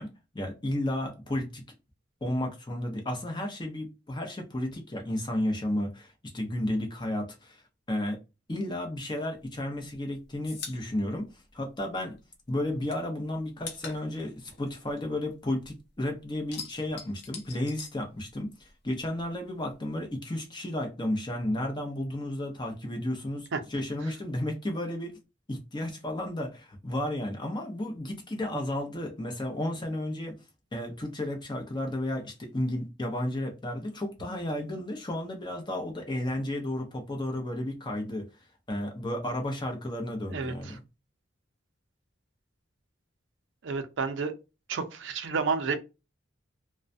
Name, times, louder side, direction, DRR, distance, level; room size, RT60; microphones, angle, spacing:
voice 1, 0.0-1.6 2.2-7.6 7.9-8.2 8.5-12.2 12.5-25.1 25.5-30.4 30.7-38.3 38.7-40.8, left 1 dB, 25° left, 0.7 m, -33 dB
sound 1, 9.4-12.2 12.5-15.8 16.1-18.7 19.0-20.1, left 5 dB, 60° left, 0.7 m, -44 dB
voice 2, 40.3-40.8 43.6-44.3 44.7-45.8, right 4 dB, 75° right, 0.5 m, -30 dB
2.3 x 2.1 x 2.5 m
head